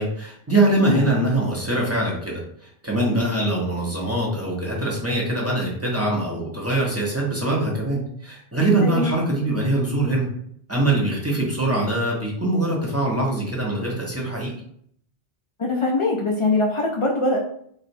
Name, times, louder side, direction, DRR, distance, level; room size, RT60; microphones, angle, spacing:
voice 1, 0.0-10.3 10.7-14.5, right 1 dB, 20° right, -4 dB, 0.5 m, -23 dB
voice 2, 8.8-9.1 15.6-17.4, left 2 dB, 55° left, -1 dB, 0.3 m, -22 dB
4.2 x 2.0 x 2.6 m, 0.66 s
omnidirectional pair, 1.1 m